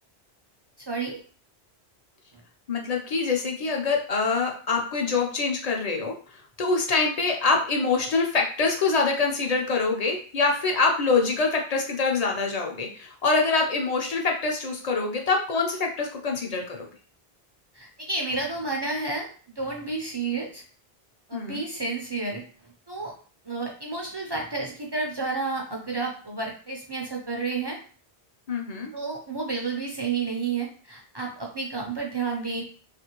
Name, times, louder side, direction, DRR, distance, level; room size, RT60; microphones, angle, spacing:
voice 1, 0.9-1.2 17.7-19.3 19.6-20.6 21.3-22.4 22.9-23.1 23.4-27.8 28.9-32.7, right 4 dB, 45° right, -1 dB, 0.3 m, -30 dB
voice 2, 2.7-16.9 21.3-21.6 28.5-28.9, left 4 dB, 45° left, 1 dB, 0.6 m, -25 dB
3.0 x 2.5 x 2.9 m, 0.41 s
omnidirectional pair, 1.1 m